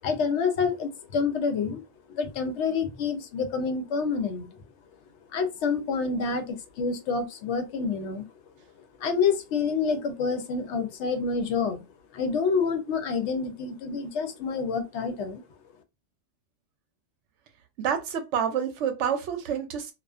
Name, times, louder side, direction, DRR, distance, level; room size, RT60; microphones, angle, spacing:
voice 1, 0.0-1.8 2.1-4.5 5.3-8.2 9.0-11.8 12.1-15.4, left 5 dB, 75° left, 0.9 m, -28 dB
voice 2, 17.8-19.9, right 8 dB, 80° right, 0.9 m, -28 dB
2.4 x 2.3 x 2.4 m
omnidirectional pair, 1.2 m